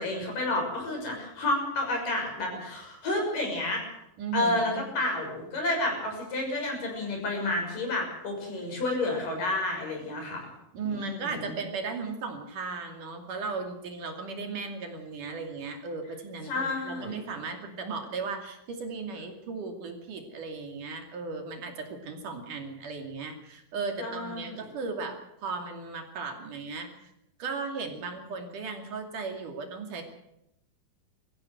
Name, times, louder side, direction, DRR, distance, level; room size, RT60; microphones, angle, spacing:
voice 1, 0.0-3.9 4.3-10.4 10.9-11.5 16.4-17.2 24.0-24.6, left 2 dB, 60° left, 1 dB, 8.0 m, -30 dB
voice 2, 4.2-4.8 10.7-27.1 27.4-30.0, right 4 dB, 60° right, 4 dB, 4.0 m, -36 dB
23.0 x 15.0 x 7.9 m, 0.81 s
omnidirectional pair, 4.3 m